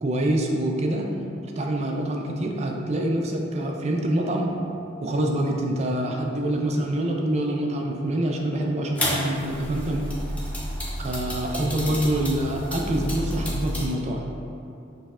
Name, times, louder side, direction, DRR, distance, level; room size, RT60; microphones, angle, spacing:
voice 1, 0.0-1.1 1.6-4.5 5.0-10.0 11.0-14.2, right 1 dB, 30° right, 1 dB, 0.4 m, -26 dB
sound 1, 9.0-13.9, equal, 5° left, 0.6 m, -30 dB
6.3 x 3.2 x 2.4 m, 2.7 s
head